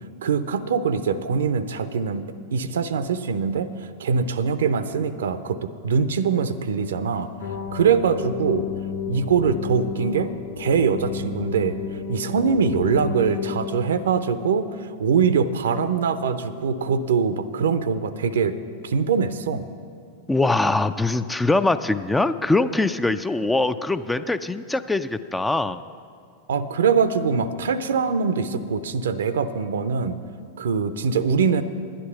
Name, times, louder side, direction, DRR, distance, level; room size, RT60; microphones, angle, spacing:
voice 1, 0.2-7.3 7.7-8.6 9.1-11.8 12.1-18.6 18.8-19.7 26.5-30.2 30.6-31.6, right 6 dB, 65° right, 13 dB, 0.5 m, -23 dB
sound 1, 7.4-14.5, left 6 dB, 55° left, 1.5 m, -32 dB
voice 2, 20.3-25.8, left 2 dB, 5° left, 12 dB, 0.3 m, -22 dB
11.0 x 10.0 x 5.7 m, 2.3 s
figure-of-eight pair, 90°, 0 cm